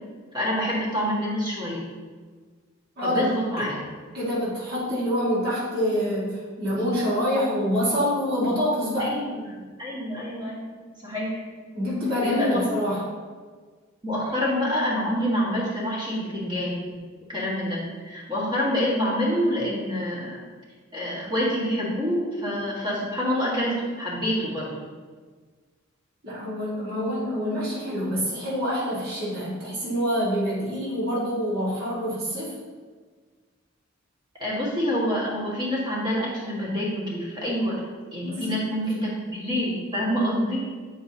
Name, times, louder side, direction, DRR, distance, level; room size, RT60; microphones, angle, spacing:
voice 1, 0.3-1.9 3.0-3.8 9.0-10.7 11.0-11.4 12.2-12.6 14.0-17.0 17.3-20.4 20.9-24.7 34.4-37.8 38.1-40.6, equal, 25° right, -6 dB, 1.7 m, -27 dB
voice 2, 3.0-3.3 3.6-3.7 4.1-9.1 11.7-13.0 26.2-32.5 38.2-38.5, equal, 50° right, -8 dB, 1.8 m, -26 dB
8.3 x 4.7 x 2.9 m, 1.5 s
head